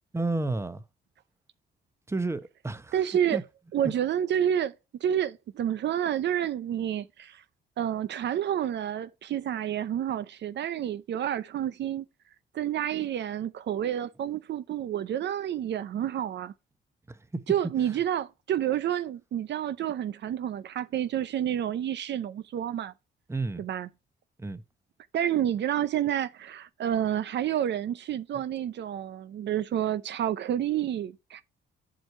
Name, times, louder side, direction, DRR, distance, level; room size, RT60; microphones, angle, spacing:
voice 1, 0.1-0.8 2.1-3.0 3.3-3.4 3.8-3.9 17.1-17.4 17.9-18.0 23.3-23.6 24.4-24.6, right 2 dB, 15° right, 0.9 m, -31 dB
voice 2, 2.9-3.4 3.7-4.7 5.0-7.4 7.8-12.0 12.5-16.5 17.5-22.9 23.6-23.9 25.1-31.4, right 10 dB, 60° right, 0.6 m, -29 dB
7.7 x 4.6 x 5.4 m
cardioid pair, 90°, 20 cm